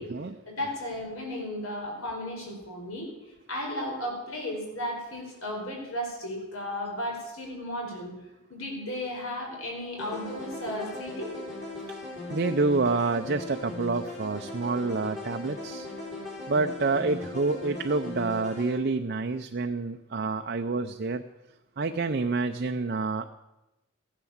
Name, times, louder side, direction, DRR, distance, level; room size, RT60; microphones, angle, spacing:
voice 1, 0.5-3.1 3.5-8.1 8.5-11.3, left 1 dB, 80° left, 0 dB, 4.9 m, -34 dB
sound 1, 10.0-18.7, left 2 dB, 35° left, 5.1 m, -38 dB
voice 2, 12.3-15.9 16.5-21.2 21.8-23.3, right 3 dB, 45° right, 6 dB, 0.5 m, -28 dB
15.5 x 10.5 x 7.2 m, 0.98 s
head